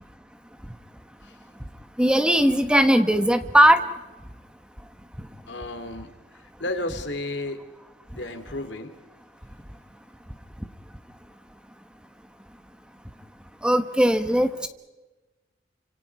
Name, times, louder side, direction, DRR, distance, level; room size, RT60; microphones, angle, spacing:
voice 1, 2.0-3.8 13.6-14.7, equal, 5° right, 8 dB, 1.2 m, -19 dB
voice 2, 5.5-6.1 6.6-7.6 8.1-8.9, left 2 dB, 70° left, 8 dB, 2.9 m, -32 dB
29.5 x 27.0 x 4.8 m, 1.1 s
head